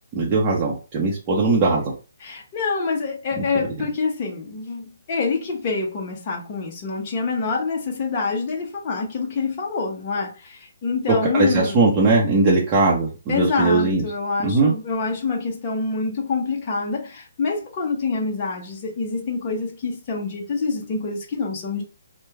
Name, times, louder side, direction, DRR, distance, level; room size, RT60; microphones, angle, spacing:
voice 1, 0.1-1.8 3.4-3.5 11.1-14.0 14.4-14.7, right 3 dB, 25° right, 0.8 m, -19 dB
voice 2, 2.2-11.8 13.3-21.8, left 4 dB, 35° left, 0.8 m, -26 dB
3.0 x 2.2 x 3.4 m
hypercardioid pair, 150°, 0 cm